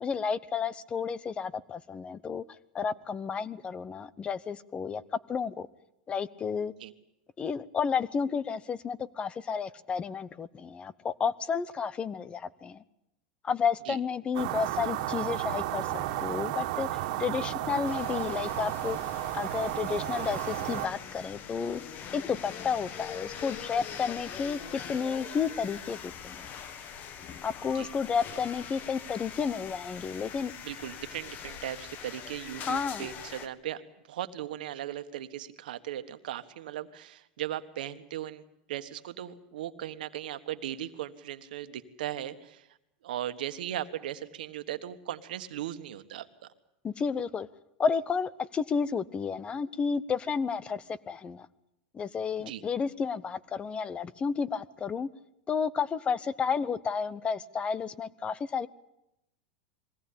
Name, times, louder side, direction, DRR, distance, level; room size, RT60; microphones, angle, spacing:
voice 1, 0.0-5.0 5.3-5.7 6.1-6.7 7.4-12.8 13.4-19.0 19.3-21.8 22.1-26.5 27.4-30.5 32.7-33.1 46.8-47.5 47.8-51.5 51.9-55.1 55.5-58.7, left 6 dB, 25° left, 18 dB, 0.8 m, -31 dB
sound 1, 14.3-20.9, right 13 dB, 60° right, 1.8 m, -33 dB
sound 2, 17.9-33.5, left 8 dB, 40° left, 1.6 m, -43 dB
voice 2, 30.6-33.8 34.1-42.7 43.0-46.3 52.4-52.6, right 12 dB, 80° right, 10 dB, 1.5 m, -38 dB
22.0 x 17.5 x 8.7 m, 0.85 s
supercardioid pair, 125°, 5 cm